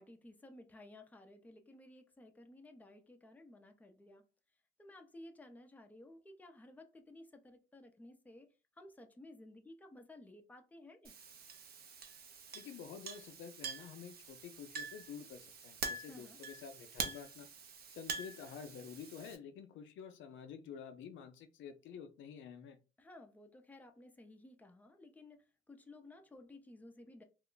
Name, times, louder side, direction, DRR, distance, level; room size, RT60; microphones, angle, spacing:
voice 1, 0.0-4.2 4.8-8.5 8.8-11.1 16.1-16.4 23.0-27.2, left 1 dB, 10° left, 0.5 m, -56 dB
Chink clink, 11.0-19.4, right 5 dB, 50° right, 0.6 m, -46 dB
voice 2, 12.5-17.5 17.9-22.8, left 7 dB, 75° left, 0.4 m, -50 dB
2.4 x 2.1 x 3.7 m
cardioid pair, 90°, 20 cm